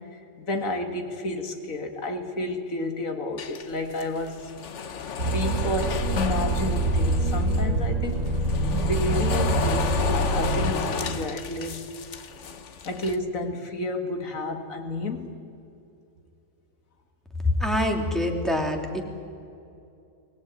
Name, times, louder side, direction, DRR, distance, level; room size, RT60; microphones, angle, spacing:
voice 1, 0.1-4.5 5.2-8.2 8.7-11.8 12.8-15.4, left 2 dB, 90° left, 5 dB, 2.4 m, -31 dB
sound 1, 3.4-7.7 8.1-13.2, left 6 dB, 65° left, 1.4 m, -33 dB
sound 2, 5.2-10.7, right 2 dB, 75° right, 2.5 m, -25 dB
voice 2, 17.6-19.0, left 1 dB, ahead, 2 dB, 2.6 m, -25 dB
24.0 x 18.5 x 9.6 m, 2.6 s
omnidirectional pair, 1.4 m